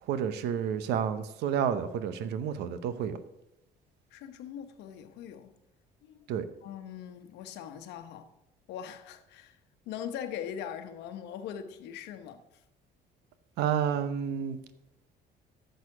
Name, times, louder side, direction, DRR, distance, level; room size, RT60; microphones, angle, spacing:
voice 1, 0.1-3.2 6.3-6.4 13.6-14.6, right 8 dB, 85° right, 0.8 m, -30 dB
voice 2, 4.1-5.5 6.1-6.3 6.6-8.3 8.7-9.6 9.9-12.4, left 9 dB, 85° left, 1.0 m, -41 dB
11.0 x 6.6 x 4.9 m
cardioid pair, 110°, 17 cm